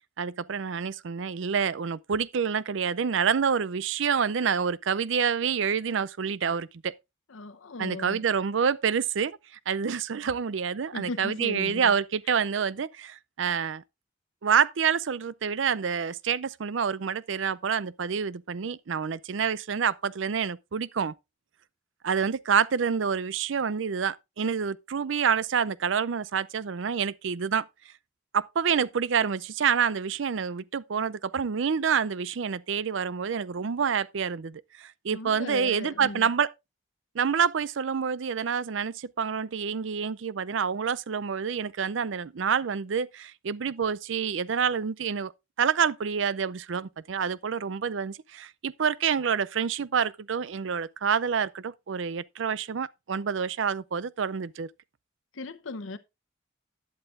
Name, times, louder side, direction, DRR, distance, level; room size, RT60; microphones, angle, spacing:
voice 1, 0.2-6.9 7.8-9.4 9.7-13.8 14.4-21.1 22.0-27.6 28.3-36.5 37.1-45.3 45.6-54.7, right 6 dB, 70° right, 0.5 m, -27 dB
voice 2, 7.3-8.2 10.9-11.9 35.1-36.3 55.3-56.0, left 2 dB, 90° left, 0.9 m, -37 dB
11.5 x 11.0 x 2.5 m
head